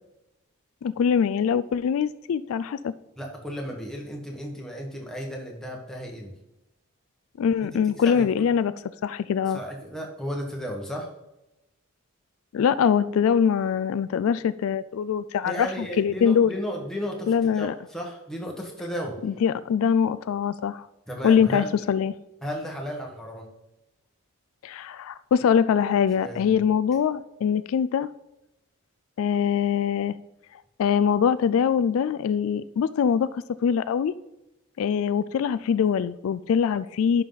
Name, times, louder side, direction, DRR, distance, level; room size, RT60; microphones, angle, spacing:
voice 1, 0.8-2.9 7.4-8.7 9.0-9.6 12.5-16.5 17.3-17.7 19.2-20.9 21.2-22.1 24.6-28.1 29.2-30.2 30.8-34.1 34.8-37.2, left 7 dB, 70° left, 16 dB, 0.3 m, -23 dB
voice 2, 3.2-6.3 7.6-7.7 8.0-8.5 9.5-11.1 15.4-19.2 21.1-21.7 22.4-23.5 26.2-26.6, equal, ahead, -1 dB, 1.4 m, -34 dB
11.0 x 5.7 x 4.0 m, 0.92 s
head